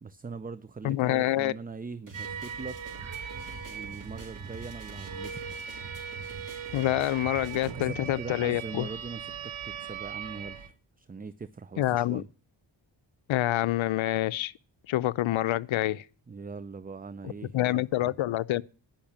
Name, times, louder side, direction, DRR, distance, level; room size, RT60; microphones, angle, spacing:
voice 1, 0.0-2.8 3.6-5.4 7.5-12.3 16.3-18.1, right 4 dB, 20° right, 0.5 m, -41 dB
voice 2, 0.8-1.5 6.7-8.9 11.8-12.2 13.3-14.5 14.9-16.0 17.5-18.6, left 14 dB, 80° left, 0.6 m, -27 dB
sound 1, 2.1-7.7, right 4 dB, 40° right, 3.4 m, -46 dB
sound 2, 2.1-10.7, right 7 dB, 85° right, 1.4 m, -39 dB
10.5 x 5.8 x 8.5 m
cardioid pair, 55°, 47 cm